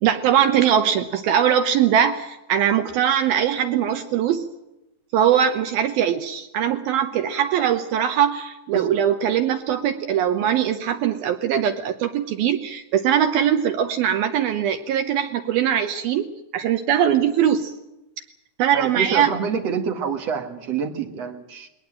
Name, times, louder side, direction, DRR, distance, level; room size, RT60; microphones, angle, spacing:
voice 1, 0.0-4.4 5.1-16.3 16.5-17.7 18.6-19.3, right 9 dB, 75° right, 8 dB, 2.3 m, -21 dB
voice 2, 18.7-21.7, right 6 dB, 50° right, 5 dB, 2.2 m, -27 dB
21.5 x 19.0 x 8.8 m, 0.92 s
omnidirectional pair, 5.4 m